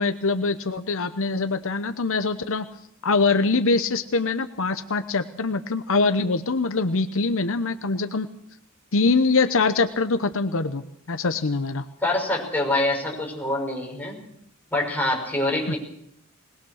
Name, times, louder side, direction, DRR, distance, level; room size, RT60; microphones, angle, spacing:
voice 1, 0.0-2.6 3.0-8.3 8.9-10.8 11.1-11.9 15.7-15.8, left 3 dB, 65° left, 9 dB, 0.9 m, -23 dB
voice 2, 12.0-14.2 14.7-15.8, left 1 dB, 10° left, -2 dB, 5.8 m, -25 dB
21.0 x 20.5 x 6.5 m, 0.74 s
head